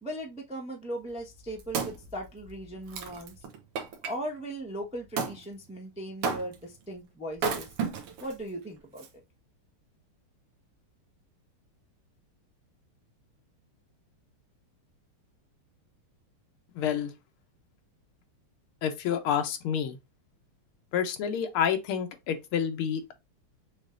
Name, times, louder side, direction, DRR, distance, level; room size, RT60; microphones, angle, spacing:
voice 1, 0.0-3.3 4.0-7.7 8.2-9.1, right 1 dB, 5° right, 0.6 m, -38 dB
Wood, 1.2-4.1 5.2-5.4 6.2-6.8 7.3-8.3 9.0-9.1, right 5 dB, 85° right, 1.9 m, -33 dB
voice 2, 16.7-17.1 18.8-20.0 20.9-23.1, left 8 dB, 80° left, 1.7 m, -29 dB
6.3 x 3.3 x 2.5 m
omnidirectional pair, 2.4 m